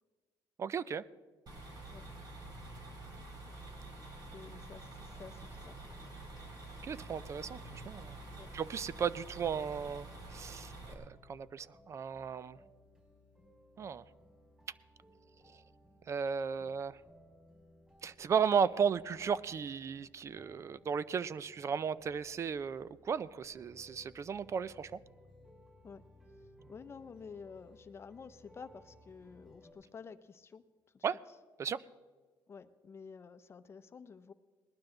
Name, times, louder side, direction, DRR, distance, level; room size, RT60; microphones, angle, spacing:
voice 1, 0.6-1.0 6.8-8.2 8.5-12.6 13.8-14.0 16.1-17.0 18.0-24.9 31.0-31.2 31.6-31.8, right 6 dB, 35° right, 18 dB, 0.4 m, -35 dB
sound 1, 1.5-10.9, right 2 dB, 50° right, 3.6 m, -48 dB
voice 2, 4.3-5.9 8.4-8.5 25.8-26.0 26.7-30.6 30.9-31.1 32.5-34.3, left 5 dB, 30° left, 11 dB, 0.7 m, -51 dB
sound 2, 11.1-29.7, equal, 15° right, 5.1 m, -61 dB
20.0 x 12.0 x 3.9 m, 1.4 s
cardioid pair, 120°, 8 cm